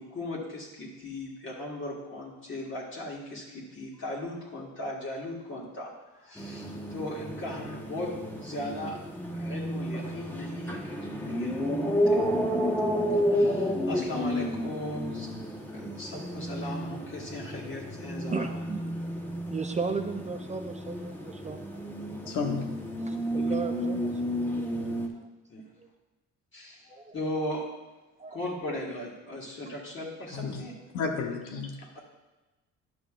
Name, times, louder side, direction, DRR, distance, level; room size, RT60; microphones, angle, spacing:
voice 1, 0.0-9.0 9.3-12.2 13.3-15.3 15.7-18.5 23.3-23.5 25.5-25.6 26.5-27.6 28.3-30.7 31.8-32.0, left 1 dB, 40° left, -6 dB, 1.8 m, -38 dB
sound 1, 6.4-25.1, equal, 5° left, 1.0 m, -31 dB
voice 2, 18.3-18.9 19.5-21.8 22.2-22.3 23.0-24.1 24.4-24.7 25.8-25.9 26.9-27.2 28.2-28.4, right 4 dB, 25° right, 6 dB, 0.5 m, -35 dB
voice 3, 22.3-22.6 30.3-30.6 30.9-31.7, left 4 dB, 90° left, 2 dB, 1.0 m, -31 dB
10.5 x 6.0 x 2.5 m, 1.1 s
cardioid pair, 90°, 30 cm